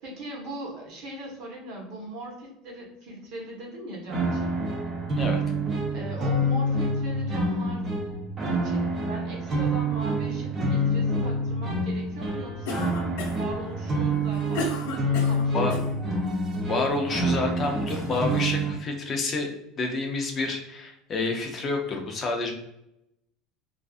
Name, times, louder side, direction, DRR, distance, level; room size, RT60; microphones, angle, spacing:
voice 1, 0.0-4.6 5.9-7.9 8.5-13.0 13.3-14.7 15.0-16.0, right 1 dB, 55° right, -1 dB, 0.9 m, -39 dB
sound 1, 4.1-18.7, right 1 dB, 25° right, 0.6 m, -27 dB
Cough, 12.7-13.5 14.1-15.9, left 2 dB, 85° left, 0.6 m, -33 dB
voice 2, 16.7-19.5 19.8-22.5, left 3 dB, 25° left, 3 dB, 0.4 m, -28 dB
2.4 x 2.4 x 2.3 m, 0.82 s
cardioid pair, 160°, 0 cm